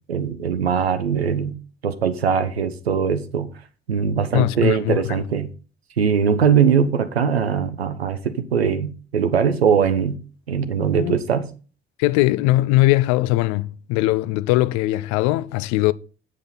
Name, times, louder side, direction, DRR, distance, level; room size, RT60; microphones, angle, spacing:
voice 1, 0.1-1.6 1.8-3.5 3.9-5.5 6.0-10.2 10.5-11.5, right 7 dB, 90° right, 0.6 m, -21 dB
voice 2, 4.3-5.0 10.8-11.2 12.0-15.9, left 18 dB, 65° left, 0.5 m, -20 dB
7.6 x 6.3 x 5.6 m
figure-of-eight pair, 45°, 30 cm